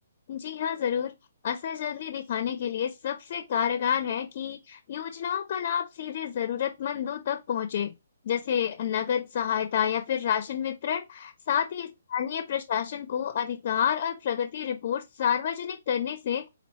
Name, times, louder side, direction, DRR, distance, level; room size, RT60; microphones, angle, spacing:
voice 1, 0.3-1.1 1.4-7.9 8.2-16.5, left 8 dB, 45° left, 0.4 m, -29 dB
4.1 x 2.7 x 4.1 m
figure-of-eight pair, 130°, 0 cm